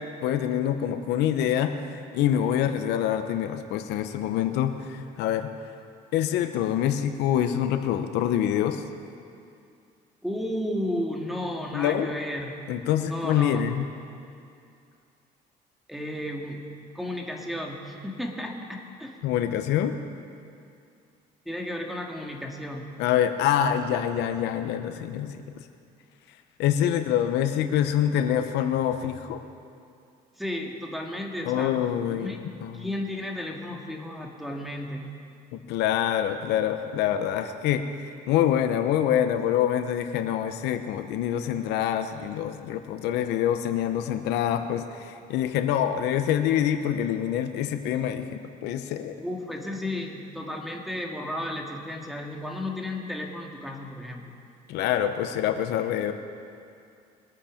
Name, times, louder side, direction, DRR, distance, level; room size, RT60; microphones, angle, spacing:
voice 1, 0.2-5.5 6.1-8.8 11.7-12.1 12.7-13.8 19.2-20.0 23.0-25.7 26.6-29.4 31.4-32.9 35.5-49.2 54.7-56.1, left 10 dB, 90° left, 8 dB, 0.8 m, -26 dB
voice 2, 10.2-12.5 13.1-13.6 15.9-16.6 16.9-19.1 21.5-22.9 30.4-31.8 32.1-32.4 32.7-35.0 49.2-54.4, left 1 dB, ahead, 0 dB, 2.0 m, -33 dB
23.0 x 8.7 x 5.1 m, 2.4 s
cardioid pair, 110°, 17 cm